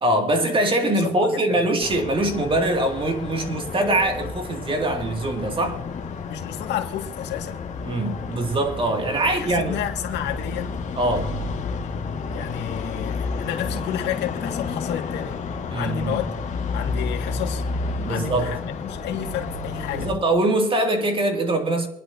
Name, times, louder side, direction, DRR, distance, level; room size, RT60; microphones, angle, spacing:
voice 1, 0.0-5.8 7.8-9.8 11.0-11.3 15.7-16.2 18.0-18.5 19.9-21.9, right 1 dB, 30° right, 2.5 m, -23 dB
voice 2, 0.8-1.6 6.2-7.7 9.2-10.8 12.3-15.4 15.8-16.3 16.7-17.6 18.1-20.3, left 10 dB, 75° left, 2.1 m, -31 dB
sound 1, 1.8-20.1, left 4 dB, 40° left, 1.9 m, -31 dB
25.0 x 11.0 x 2.8 m
cardioid pair, 110°, 18 cm